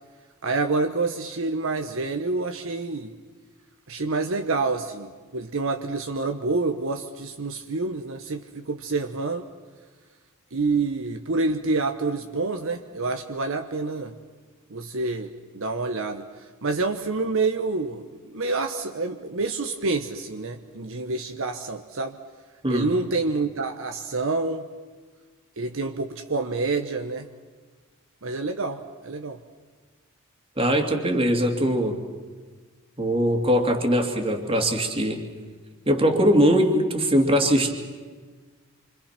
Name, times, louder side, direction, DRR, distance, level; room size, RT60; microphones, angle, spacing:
voice 1, 0.4-3.1 3.9-9.5 10.5-14.1 14.7-22.2 22.7-24.7 25.6-27.3 28.2-29.4, right 3 dB, 65° right, 6 dB, 1.1 m, -27 dB
voice 2, 30.6-32.0 33.0-35.2 35.9-37.7, equal, 25° right, 4 dB, 2.5 m, -21 dB
27.5 x 25.5 x 5.9 m, 1.4 s
head